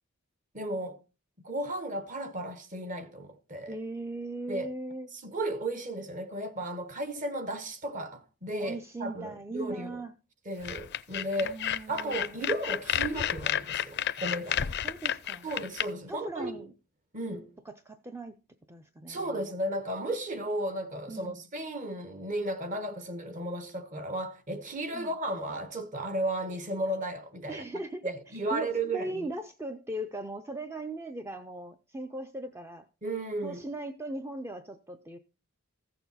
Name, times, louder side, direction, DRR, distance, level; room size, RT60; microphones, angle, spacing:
voice 1, 0.5-1.0 1.4-3.8 4.5-4.7 5.2-10.0 10.5-11.6 11.9-14.6 15.4-16.7 17.1-17.5 19.1-27.6 28.0-29.3 33.0-33.6, right 1 dB, 35° right, 1.1 m, -34 dB
voice 2, 3.7-5.1 8.6-10.1 11.4-12.5 14.6-15.5 16.1-16.7 17.6-18.4 18.7-19.5 21.1-21.4 24.9-25.1 27.5-32.9 33.4-35.2, right 2 dB, 10° right, 0.5 m, -39 dB
sound 1, 10.6-15.8, left 10 dB, 50° left, 0.5 m, -31 dB
15.0 x 6.8 x 4.1 m
head